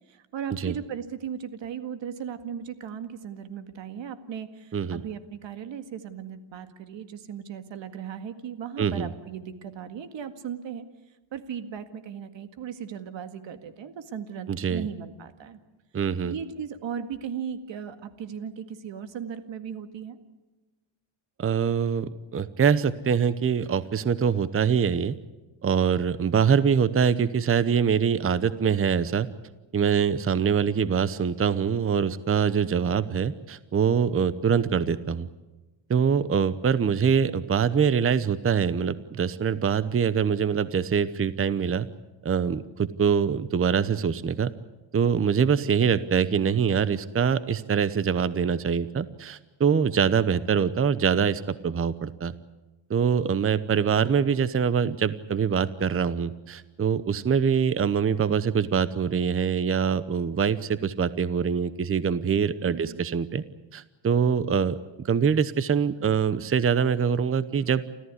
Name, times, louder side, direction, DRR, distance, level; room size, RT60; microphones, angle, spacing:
voice 1, 0.1-10.9 11.3-15.6 16.2-20.2 62.6-63.0, right 8 dB, 65° right, 9 dB, 2.0 m, -37 dB
voice 2, 8.8-9.1 14.5-14.9 15.9-16.3 21.4-25.1 25.6-29.3 29.7-35.3 35.9-41.9 42.2-44.5 44.9-52.3 52.9-63.4 63.7-64.8 65.0-67.9, right 7 dB, 25° right, 15 dB, 0.9 m, -24 dB
29.0 x 14.5 x 9.7 m, 1.1 s
cardioid pair, 115°, 48 cm